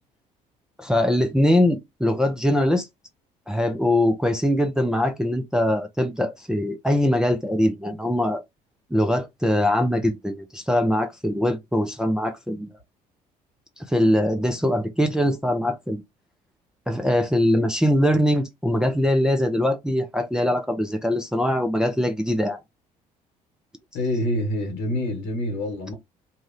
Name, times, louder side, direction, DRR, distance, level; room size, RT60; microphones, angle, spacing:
voice 1, 0.8-2.9 3.5-8.4 8.9-12.7 13.9-16.0 16.9-22.6, left 1 dB, 5° right, 0.6 m, -22 dB
voice 2, 23.9-25.9, left 1 dB, 65° left, 1.3 m, -26 dB
2.7 x 2.3 x 3.2 m
figure-of-eight pair, 55°, 21 cm